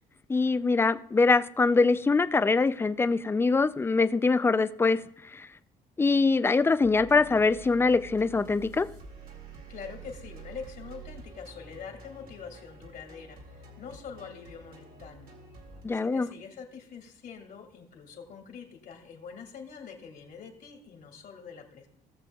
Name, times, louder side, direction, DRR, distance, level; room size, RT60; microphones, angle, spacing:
voice 1, 0.3-5.0 5.3-5.5 6.0-8.9 15.8-16.3, left 4 dB, 15° left, 0.4 m, -23 dB
sound 1, 6.5-15.8, right 3 dB, 60° right, 2.3 m, -48 dB
voice 2, 9.7-15.3 15.9-21.9, left 6 dB, 60° left, 2.2 m, -45 dB
18.0 x 6.8 x 2.3 m
cardioid pair, 110°, 17 cm